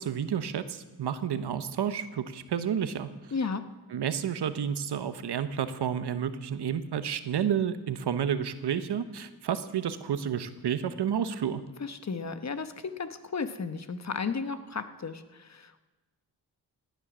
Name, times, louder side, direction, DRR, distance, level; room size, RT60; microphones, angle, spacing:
voice 1, 0.0-3.3 3.9-11.6, right 8 dB, 80° right, 12 dB, 0.9 m, -30 dB
voice 2, 3.3-3.6 11.8-15.8, left 5 dB, 40° left, 10 dB, 1.1 m, -34 dB
17.0 x 9.3 x 6.1 m, 1.2 s
cardioid pair, 60°, 40 cm